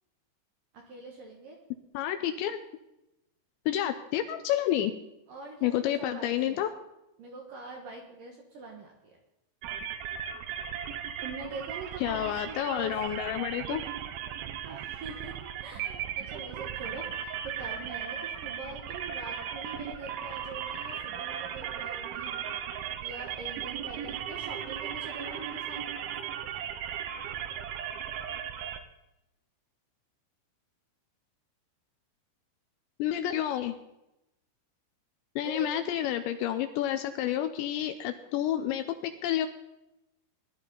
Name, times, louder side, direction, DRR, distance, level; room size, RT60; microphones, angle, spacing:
voice 1, 0.7-1.6 5.3-6.7 7.2-9.2 11.2-12.9 14.6-22.3 23.0-25.8 35.4-35.7, right 3 dB, 60° right, 0 dB, 2.3 m, -43 dB
voice 2, 1.9-2.6 3.7-4.9 5.6-6.7 12.0-13.8 33.0-33.7 35.4-39.5, left 11 dB, 80° left, 8 dB, 2.7 m, -29 dB
sound 1, 9.6-28.8, right 9 dB, 85° right, 2.1 m, -37 dB
19.0 x 11.5 x 4.0 m, 0.91 s
omnidirectional pair, 5.6 m